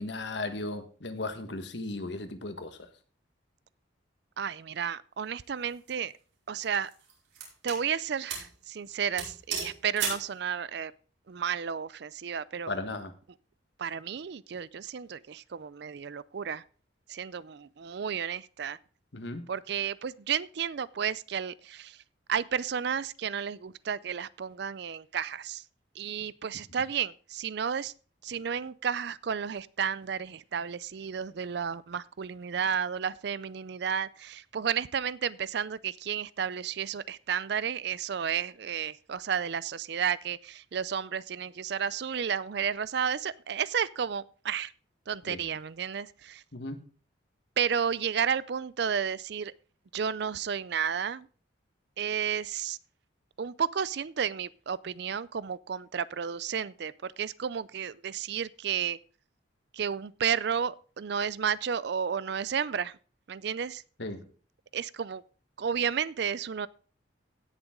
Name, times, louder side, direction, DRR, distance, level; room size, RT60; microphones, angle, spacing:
voice 1, 0.0-2.9 12.7-13.1 19.1-19.5 45.3-45.5 46.5-46.8 64.0-64.3, left 2 dB, 65° left, 1.4 m, -36 dB
voice 2, 4.4-6.1 6.5-6.9 7.6-10.9 11.3-12.7 13.8-16.6 17.1-18.8 19.5-22.0 22.3-25.6 26.0-27.9 28.2-44.7 45.1-46.4 47.6-49.5 49.9-51.3 52.0-52.8 53.4-59.0 59.7-62.9 63.3-63.8 64.7-65.2 65.6-66.7, right 7 dB, 60° right, 0.4 m, -32 dB
sound 1, 5.6-5.9 6.6-7.8 8.3-8.5 8.8-8.9 9.2-10.3, right 5 dB, 80° right, 5.2 m, -35 dB
17.0 x 7.0 x 3.7 m
head